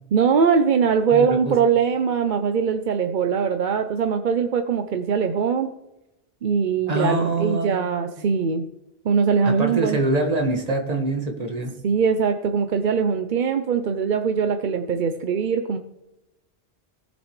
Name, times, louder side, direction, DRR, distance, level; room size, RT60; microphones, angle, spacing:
voice 1, 0.1-5.7 6.4-8.6 9.0-10.0 11.8-15.8, right 6 dB, 50° right, 7 dB, 0.7 m, -21 dB
voice 2, 1.1-1.5 6.9-7.8 9.4-11.7, right 2 dB, 35° right, 2 dB, 1.7 m, -24 dB
17.5 x 7.2 x 3.2 m, 0.93 s
omnidirectional pair, 1.1 m